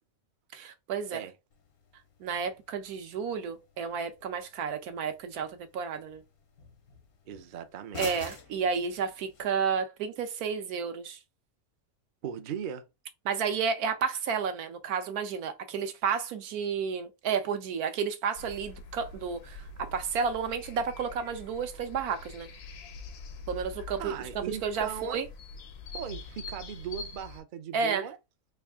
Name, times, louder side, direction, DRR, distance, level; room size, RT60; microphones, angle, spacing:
voice 1, 0.5-1.2 2.2-6.2 8.0-11.2 13.3-22.5 23.5-25.3 27.7-28.1, right 6 dB, 90° right, 1.3 m, -31 dB
sound 1, 1.5-9.5, left 5 dB, 75° left, 1.3 m, -49 dB
voice 2, 7.3-8.4 12.2-12.8 24.0-25.2 25.9-28.2, right 8 dB, 70° right, 0.4 m, -38 dB
sound 2, 18.4-27.4, left 3 dB, 60° left, 0.7 m, -45 dB
3.5 x 2.4 x 3.5 m
omnidirectional pair, 1.5 m